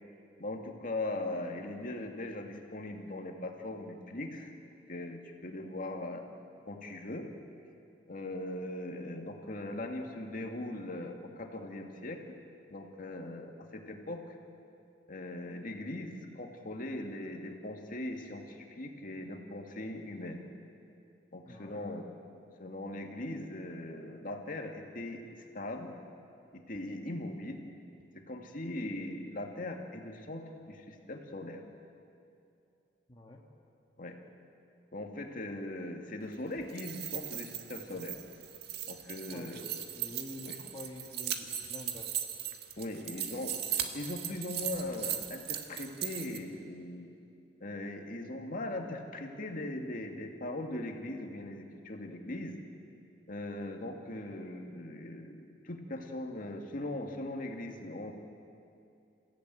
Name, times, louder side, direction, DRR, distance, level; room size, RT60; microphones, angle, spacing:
voice 1, 0.4-4.5 4.9-6.2 6.7-7.3 8.1-12.2 12.7-14.4 15.1-20.4 21.3-22.1 22.6-25.2 25.5-25.9 26.5-27.6 28.1-31.6 34.0-34.2 34.9-38.2 38.9-39.6 40.4-40.6 42.8-47.1 47.6-52.6 53.3-58.1, left 1 dB, 50° left, 3 dB, 2.3 m, -40 dB
voice 2, 21.5-21.9 33.1-33.4 39.3-42.2 53.8-54.2, left 1 dB, 25° left, -1 dB, 1.7 m, -48 dB
sound 1, 36.6-46.4, right 10 dB, 60° right, 1.7 m, -38 dB
29.5 x 15.5 x 9.2 m, 2.6 s
head